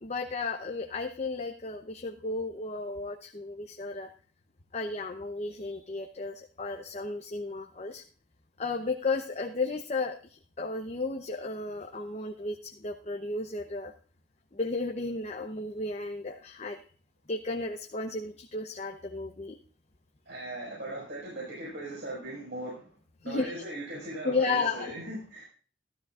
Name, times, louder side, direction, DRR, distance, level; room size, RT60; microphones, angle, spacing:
voice 1, 0.0-4.1 4.7-8.0 8.6-13.9 14.5-16.8 17.3-19.6 23.2-23.5 24.2-24.9, left 3 dB, 40° left, 4 dB, 0.8 m, -33 dB
voice 2, 20.3-22.9 23.2-25.4, right 1 dB, 70° right, -4 dB, 5.2 m, -39 dB
15.0 x 13.0 x 2.5 m, 0.42 s
head